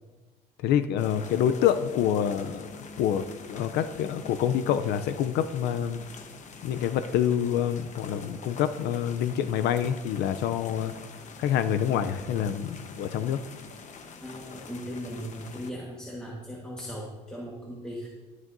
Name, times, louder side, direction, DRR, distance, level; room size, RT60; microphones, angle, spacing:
voice 1, 0.6-6.0 6.6-10.9 11.4-13.4, left 9 dB, 80° left, 11 dB, 0.5 m, -27 dB
sound 1, 1.0-15.7, left 4 dB, 45° left, 1.0 m, -45 dB
voice 2, 14.2-18.1, equal, 5° left, -4 dB, 1.4 m, -38 dB
18.0 x 6.3 x 2.6 m, 1.2 s
cardioid pair, 110°, 17 cm